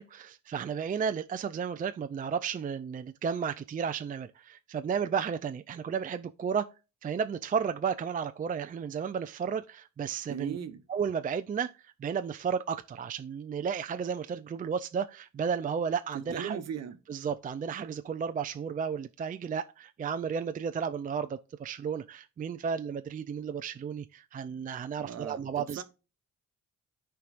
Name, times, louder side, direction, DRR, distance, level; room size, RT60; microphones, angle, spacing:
voice 1, 0.0-6.7 7.0-10.6 10.9-16.6 17.1-25.8, right 6 dB, 30° right, 0.4 m, -33 dB
voice 2, 10.3-10.8 16.1-17.0 25.0-25.8, right 8 dB, 60° right, 1.0 m, -38 dB
13.0 x 4.6 x 2.5 m
cardioid pair, 90°, 30 cm